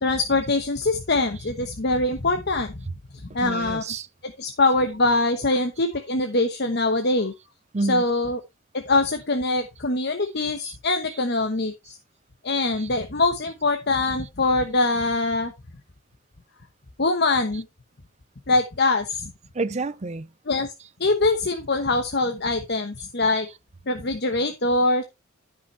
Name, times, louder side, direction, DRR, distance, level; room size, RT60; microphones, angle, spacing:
voice 1, 0.0-2.8 3.3-3.8 4.2-7.3 7.9-8.4 8.7-12.0 12.4-15.5 17.0-17.6 18.5-19.3 20.5-20.7 21.0-23.5 23.9-25.0, left 2 dB, 55° left, 1.1 m, -23 dB
voice 2, 3.3-4.1 7.7-8.1 10.6-10.8 11.1-11.2 12.7-12.9 19.5-20.3, right 3 dB, 35° right, 0.6 m, -29 dB
13.0 x 5.7 x 3.2 m
head